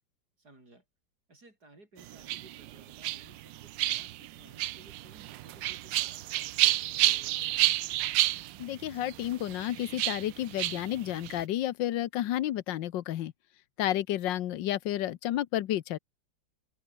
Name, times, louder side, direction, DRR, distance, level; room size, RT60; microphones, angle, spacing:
voice 1, 0.4-0.8 1.3-7.8, right 2 dB, 55° right, 7.7 m, -57 dB
sound 1, 2.0-11.4, right 16 dB, 75° right, 1.3 m, -31 dB
voice 2, 8.6-13.3 13.8-16.0, left 13 dB, 75° left, 1.5 m, -31 dB
open air
omnidirectional pair, 2.1 m